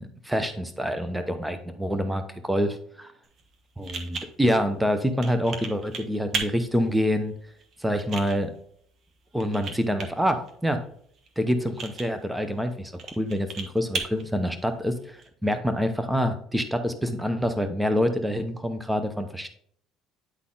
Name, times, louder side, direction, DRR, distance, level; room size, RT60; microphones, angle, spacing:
voice 1, 0.0-2.8 3.8-7.3 7.8-8.5 9.3-10.8 11.4-19.5, equal, 5° right, 8 dB, 0.7 m, -26 dB
sound 1, 3.2-15.3, right 4 dB, 45° right, 1.3 m, -38 dB
9.6 x 4.1 x 3.8 m, 0.62 s
cardioid pair, 110°, 0 cm